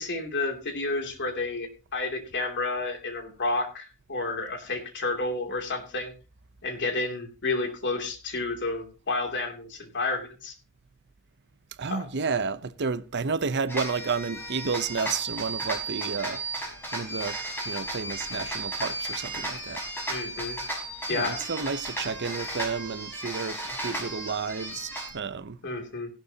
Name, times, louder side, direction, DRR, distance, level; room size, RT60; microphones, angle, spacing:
voice 1, 0.0-6.1 6.6-10.5 11.9-12.0 20.1-20.6 21.1-21.4 25.6-26.1, left 3 dB, 55° left, 2.8 m, -31 dB
voice 2, 11.8-16.4 16.9-17.4 17.6-19.8 21.1-25.6, right 5 dB, 55° right, 0.8 m, -31 dB
sound 1, 13.7-25.1, right 1 dB, 10° left, 5.8 m, -34 dB
16.0 x 11.5 x 2.9 m
head